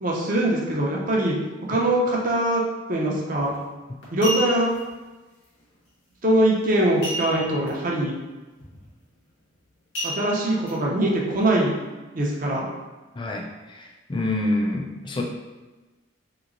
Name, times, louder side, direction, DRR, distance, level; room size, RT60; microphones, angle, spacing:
voice 1, 0.0-1.3 1.7-2.6 2.9-3.5 4.1-4.7 6.2-8.1 10.0-11.7 12.1-12.7, right 1 dB, 40° right, -2 dB, 0.6 m, -22 dB
sound 1, 3.4-3.6 4.0-4.8 7.0-7.7 8.0-8.1 8.6-8.9 9.9-10.7 11.3-11.4, left 1 dB, 70° left, 1.0 m, -31 dB
voice 2, 13.2-15.2, left 1 dB, 25° left, 0 dB, 0.4 m, -27 dB
3.4 x 2.9 x 2.5 m, 1.2 s
head